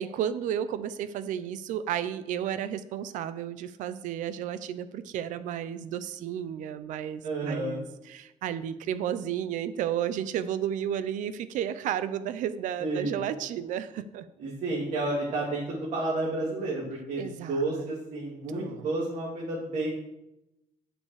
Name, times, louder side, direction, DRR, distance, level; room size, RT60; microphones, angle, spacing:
voice 1, 0.0-14.3 17.2-17.9 18.5-18.9, right 10 dB, 90° right, 14 dB, 0.7 m, -32 dB
voice 2, 7.2-7.8 12.8-13.2 14.4-19.9, right 2 dB, 70° right, -5 dB, 3.1 m, -31 dB
8.8 x 7.0 x 6.5 m, 0.89 s
cardioid pair, 105°, 13 cm